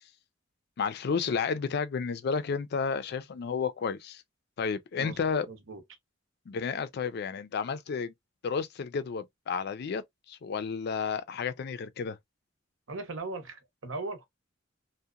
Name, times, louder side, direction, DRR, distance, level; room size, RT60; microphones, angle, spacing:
voice 1, 0.8-4.2 4.6-5.5 6.5-8.1 8.4-12.2, left 5 dB, 55° left, 0.4 m, -32 dB
voice 2, 5.5-5.8 12.9-14.2, right 3 dB, 75° right, 0.8 m, -38 dB
2.8 x 2.1 x 2.3 m
head